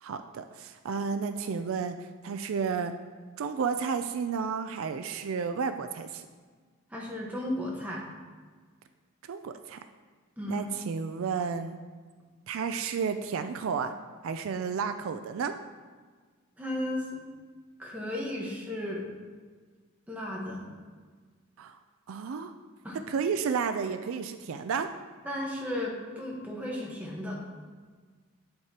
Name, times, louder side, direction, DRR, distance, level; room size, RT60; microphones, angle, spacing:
voice 1, 0.0-2.9 3.4-6.2 9.2-9.8 10.5-11.8 12.5-13.9 14.2-15.5 21.6-21.8 22.1-22.5 23.1-24.9, right 6 dB, 65° right, 9 dB, 0.3 m, -32 dB
voice 2, 6.9-8.0 10.4-10.7 16.6-17.2 17.8-19.1 20.1-20.7 22.8-23.0 25.2-27.4, left 1 dB, 5° right, -3 dB, 1.1 m, -34 dB
8.1 x 7.7 x 2.9 m, 1.5 s
head